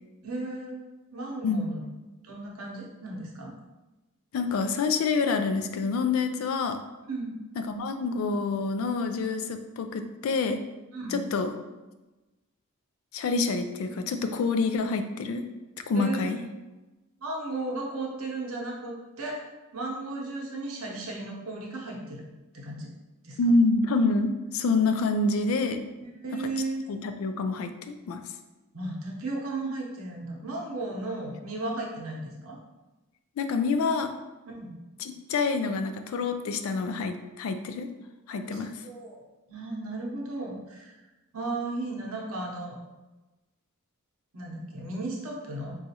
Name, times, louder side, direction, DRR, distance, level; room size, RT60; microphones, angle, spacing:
voice 1, 0.2-0.8 1.1-1.8 2.2-3.5 7.1-7.4 10.9-11.2 16.0-16.3 17.2-19.4 19.7-22.2 22.5-22.9 23.2-23.5 26.0-26.8 28.7-32.6 34.5-34.8 38.4-39.2 39.5-41.0 41.3-42.8 44.3-45.8, right 2 dB, 70° right, -2 dB, 0.8 m, -35 dB
voice 2, 4.3-6.8 7.6-10.6 11.1-11.5 13.1-15.5 15.9-16.4 23.4-25.8 26.4-26.5 26.9-28.2 33.4-34.1 35.0-37.9 38.3-38.7, left 3 dB, 65° left, 7 dB, 0.3 m, -27 dB
3.9 x 2.4 x 2.8 m, 1.1 s
head